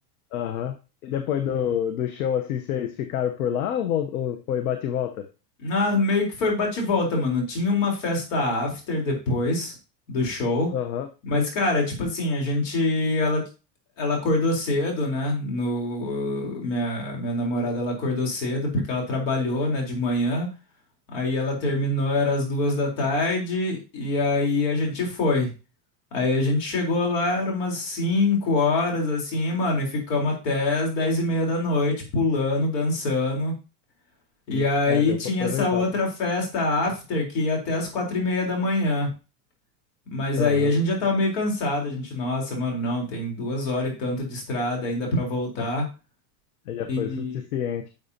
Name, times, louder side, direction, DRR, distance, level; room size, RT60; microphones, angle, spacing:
voice 1, 0.3-0.8 1.0-5.3 10.7-11.1 34.5-35.9 40.4-40.7 45.6-45.7 46.7-47.9, left 9 dB, 65° left, 8 dB, 1.0 m, -28 dB
voice 2, 5.6-9.7 10.1-10.7 11.2-13.4 14.0-20.5 21.1-25.5 26.1-33.5 34.5-39.1 40.1-45.9 46.9-47.4, left 2 dB, 50° left, 0 dB, 3.9 m, -25 dB
10.5 x 6.9 x 2.8 m, 0.30 s
supercardioid pair, 180°, 48 cm